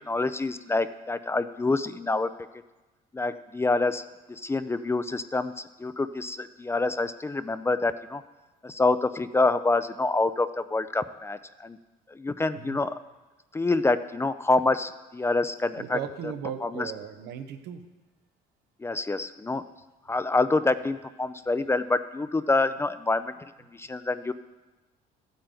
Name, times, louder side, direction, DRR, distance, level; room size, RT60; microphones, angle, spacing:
voice 1, 0.1-2.3 3.1-5.5 5.8-8.2 8.6-11.8 12.1-13.0 13.5-16.3 16.6-16.9 18.8-19.6 20.1-23.3 23.7-24.3, left 3 dB, 15° left, 12 dB, 0.4 m, -26 dB
voice 2, 15.8-17.8, right 9 dB, 85° right, 8 dB, 0.9 m, -37 dB
14.5 x 8.8 x 3.9 m, 1.1 s
cardioid pair, 110°, 17 cm